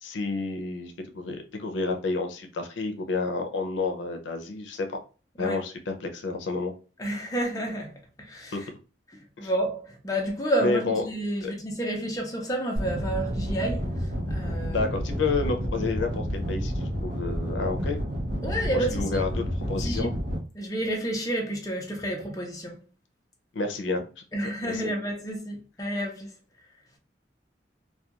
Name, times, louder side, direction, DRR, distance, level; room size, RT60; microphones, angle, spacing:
voice 1, 0.0-5.0 5.4-6.7 8.5-8.6 9.4-9.5 10.6-11.0 11.4-11.5 14.7-18.0 18.7-20.1 23.5-24.0 24.4-24.9, left 3 dB, 85° left, 0.5 m, -30 dB
voice 2, 7.0-8.6 9.4-13.9 14.3-14.9 18.4-19.0 19.8-20.1 20.6-22.8 24.3-26.3, right 1 dB, 20° left, 0.6 m, -30 dB
sound 1, 12.8-20.4, equal, 65° right, 0.7 m, -30 dB
2.3 x 2.2 x 2.8 m
head